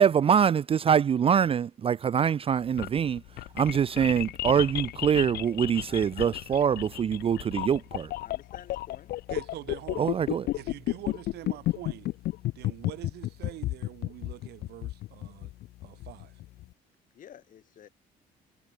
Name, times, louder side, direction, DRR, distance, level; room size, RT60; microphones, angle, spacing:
voice 1, 0.0-3.2 3.5-8.1 10.0-10.4, right 8 dB, 35° right, 0.5 m, -24 dB
sound 1, 2.5-16.6, left 16 dB, 70° left, 0.8 m, -33 dB
voice 2, 5.9-6.4 8.2-9.1 17.1-17.9, left 9 dB, 50° left, 2.7 m, -51 dB
voice 3, 9.3-10.2 10.5-12.1 12.6-15.5 15.8-16.4, right 16 dB, 75° right, 1.9 m, -44 dB
cardioid pair, 110°, 17 cm